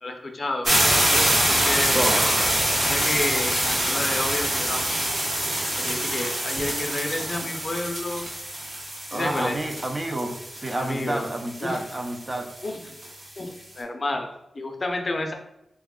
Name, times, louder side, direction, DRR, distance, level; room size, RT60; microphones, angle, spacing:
voice 1, 0.0-0.7 1.1-2.1 2.8-5.0 5.8-8.3 9.1-9.6 10.7-11.3 11.6-11.8 12.6-13.0 13.4-15.3, left 2 dB, 35° left, 3 dB, 0.4 m, -30 dB
sound 1, 0.7-13.4, right 1 dB, 50° right, 1.0 m, -25 dB
voice 2, 1.9-2.8 9.1-12.5, right 1 dB, 25° right, 4 dB, 0.4 m, -29 dB
sound 2, 3.3-7.6, right 1 dB, 75° right, 1.1 m, -36 dB
3.3 x 2.3 x 3.6 m, 0.86 s
wide cardioid pair, 155°, 0 cm